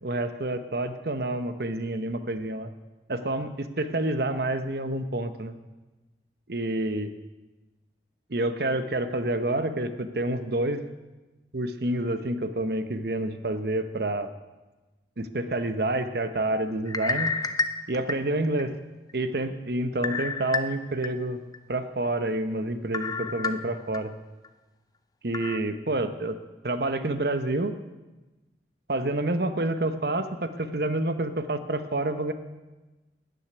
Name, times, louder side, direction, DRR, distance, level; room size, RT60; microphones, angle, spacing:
voice 1, 0.0-2.7 3.1-5.5 6.5-7.1 8.3-10.8 11.5-14.3 15.2-17.3 17.9-18.7 19.1-21.4 21.7-24.1 25.2-26.4 26.6-27.7 28.9-32.3, right 2 dB, 60° right, 10 dB, 0.9 m, -28 dB
sound 1, 16.9-18.6 19.1-19.2 20.0-21.1 21.5-21.6 22.9-24.0 24.4-24.5 25.3-25.6, left 4 dB, 20° left, 0.5 m, -30 dB
13.5 x 6.5 x 9.8 m, 1.1 s
head